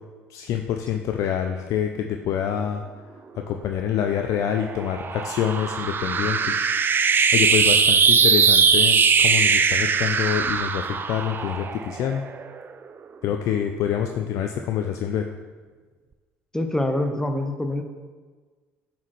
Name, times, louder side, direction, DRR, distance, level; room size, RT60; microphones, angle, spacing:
voice 1, 0.3-2.8 3.5-6.7 7.3-12.2 13.2-15.3, left 9 dB, 60° left, 5 dB, 0.4 m, -26 dB
sound 1, 4.1-12.7, right 6 dB, 35° right, 0.4 m, -20 dB
voice 2, 16.5-17.8, left 1 dB, 10° left, 6 dB, 0.7 m, -25 dB
7.2 x 4.3 x 3.2 m, 1.4 s
hypercardioid pair, 65°, 6 cm